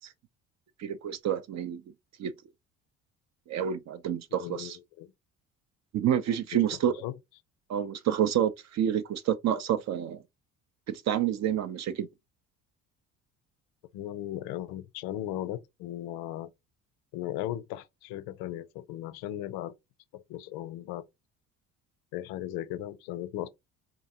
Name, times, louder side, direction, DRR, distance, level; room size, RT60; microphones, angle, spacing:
voice 1, 0.8-1.8 2.2-2.3 3.5-4.8 5.9-6.9 7.7-10.2 10.9-12.1, right 10 dB, 45° right, 0.5 m, -28 dB
voice 2, 4.3-5.1 7.0-7.2 13.9-16.5 17.1-19.7 20.1-21.1 22.1-23.5, left 13 dB, 70° left, 0.5 m, -37 dB
3.8 x 2.5 x 2.7 m
hypercardioid pair, 55°, 39 cm